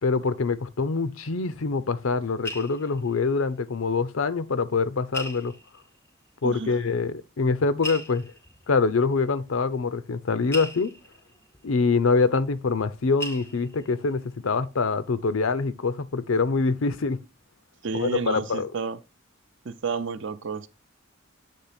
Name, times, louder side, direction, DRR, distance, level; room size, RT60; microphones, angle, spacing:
voice 1, 0.0-5.5 6.4-8.3 8.7-10.9 11.6-17.2 17.9-18.7, left 4 dB, 90° left, 0.6 m, -25 dB
sound 1, 2.2-4.1 4.3-4.4 5.1-6.1 6.9-7.0 7.8-12.9 13.2-14.1 14.6-14.9 15.2-15.3, left 1 dB, 10° left, 0.5 m, -40 dB
voice 2, 17.8-19.0 19.6-20.7, right 4 dB, 65° right, 0.6 m, -31 dB
8.5 x 3.4 x 5.7 m
head